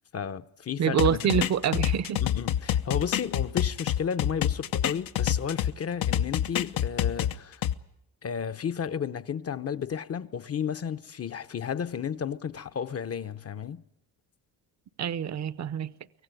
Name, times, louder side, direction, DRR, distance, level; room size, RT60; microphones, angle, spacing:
voice 1, 0.1-1.5 2.2-7.6 8.2-13.8, left 7 dB, 40° left, 0.9 m, -33 dB
voice 2, 0.8-2.2 15.0-15.9, right 8 dB, 50° right, 0.8 m, -26 dB
sound 1, 1.0-5.7 6.0-7.7, left 11 dB, 65° left, 0.9 m, -27 dB
24.5 x 16.5 x 9.2 m
cardioid pair, 80°, 36 cm